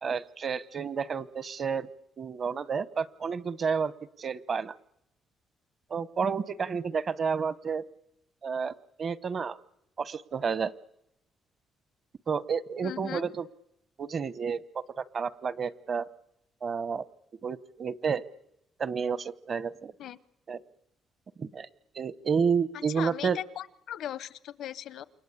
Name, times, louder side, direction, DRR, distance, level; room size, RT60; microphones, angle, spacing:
voice 1, 0.0-1.9 2.2-3.9 4.2-4.7 5.9-7.8 8.4-9.6 10.0-10.7 12.3-13.4 14.0-16.0 16.6-17.0 17.4-18.2 18.8-19.9 20.5-20.6 21.4-21.7 21.9-23.4, right 6 dB, 45° right, 18 dB, 0.9 m, -30 dB
voice 2, 12.8-13.2 20.0-20.2 22.7-25.0, left 11 dB, 75° left, 18 dB, 0.9 m, -38 dB
28.5 x 23.5 x 8.4 m, 0.84 s
cardioid pair, 90°, 0 cm